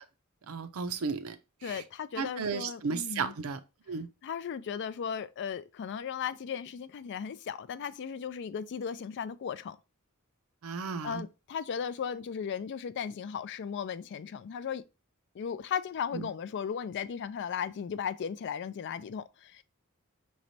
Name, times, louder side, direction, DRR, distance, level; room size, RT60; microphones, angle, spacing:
voice 1, 0.5-1.4 1.6-1.8 2.2-3.6 3.9-4.1 10.6-11.2 16.1-16.3, right 5 dB, 75° right, 0.5 m, -34 dB
voice 2, 1.6-3.3 4.2-9.8 11.0-14.8 15.3-19.6, left 7 dB, 55° left, 0.3 m, -36 dB
5.9 x 3.1 x 2.7 m
head